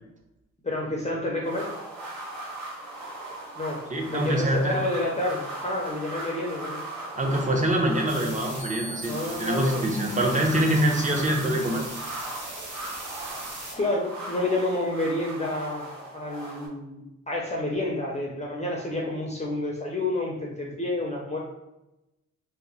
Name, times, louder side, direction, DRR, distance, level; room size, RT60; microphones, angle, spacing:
voice 1, 0.6-1.7 3.5-3.8 4.1-6.9 9.0-10.0 13.8-21.4, left 2 dB, 25° left, -2 dB, 0.5 m, -29 dB
sound 1, 1.4-16.7, right 2 dB, 85° right, 1.2 m, -39 dB
voice 2, 3.9-4.8 7.2-11.8, right 1 dB, 25° right, 1 dB, 0.6 m, -25 dB
sound 2, 8.1-13.7, right 2 dB, 70° right, 1.3 m, -39 dB
2.9 x 2.0 x 3.8 m, 0.92 s
wide cardioid pair, 115°, 29 cm